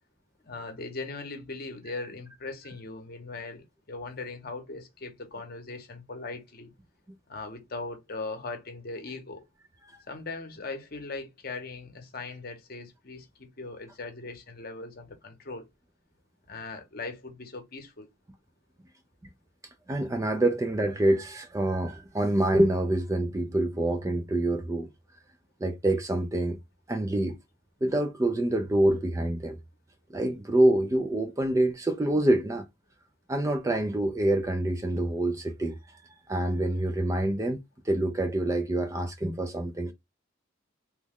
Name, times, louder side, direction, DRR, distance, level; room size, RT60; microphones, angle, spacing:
voice 1, 0.4-6.7 7.3-9.4 10.1-15.7 16.5-18.1, left 3 dB, 45° left, 0.8 m, -39 dB
voice 2, 19.9-24.9 25.6-26.6 26.9-27.4 27.8-29.6 30.1-32.6 33.3-36.0 36.3-37.6 37.8-39.9, right 1 dB, 15° right, 0.3 m, -26 dB
3.0 x 2.2 x 3.5 m
head